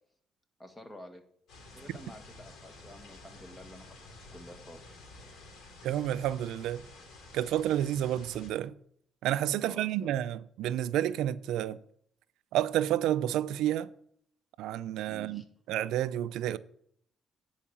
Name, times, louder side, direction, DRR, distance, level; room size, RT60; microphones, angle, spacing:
voice 1, 0.6-1.2 1.7-4.8 9.6-10.1 15.1-15.4, left 1 dB, 15° left, 1.7 m, -50 dB
sound 1, 1.5-8.5, left 2 dB, 80° left, 3.3 m, -51 dB
voice 2, 5.8-6.8 7.3-8.8 9.2-11.8 12.5-13.9 14.6-15.4 15.7-16.6, right 12 dB, 90° right, 0.4 m, -30 dB
10.0 x 4.8 x 7.0 m
cardioid pair, 90°, 0 cm